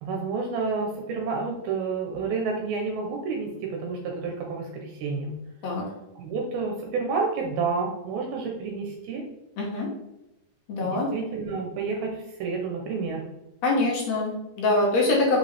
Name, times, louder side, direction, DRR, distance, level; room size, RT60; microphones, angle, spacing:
voice 1, 0.0-5.3 6.2-9.2 10.8-13.3, right 4 dB, 80° right, 1 dB, 2.7 m, -30 dB
voice 2, 9.6-9.9 10.7-11.1 13.6-15.4, left 2 dB, 65° left, -2 dB, 1.8 m, -24 dB
5.9 x 5.2 x 3.4 m, 0.92 s
omnidirectional pair, 4.3 m